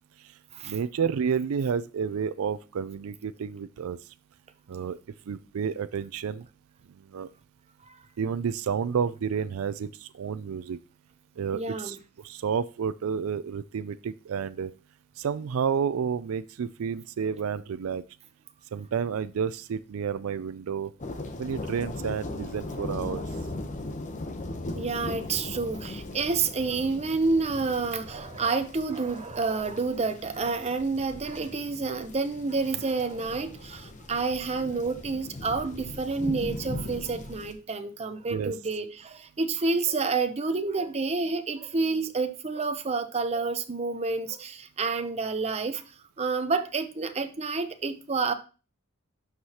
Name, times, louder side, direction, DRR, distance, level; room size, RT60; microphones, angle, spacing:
voice 1, 0.7-4.0 4.7-5.0 5.3-6.5 7.1-7.3 8.2-10.8 11.4-12.0 12.2-14.7 15.2-18.0 18.7-20.9 21.4-23.2 38.3-38.5, right 6 dB, 85° right, 0.4 m, -30 dB
voice 2, 11.5-12.0 24.7-45.8 46.2-48.3, right 4 dB, 30° right, 0.7 m, -29 dB
sound 1, 21.0-37.5, left 2 dB, 35° left, 0.9 m, -39 dB
11.5 x 4.8 x 2.9 m
head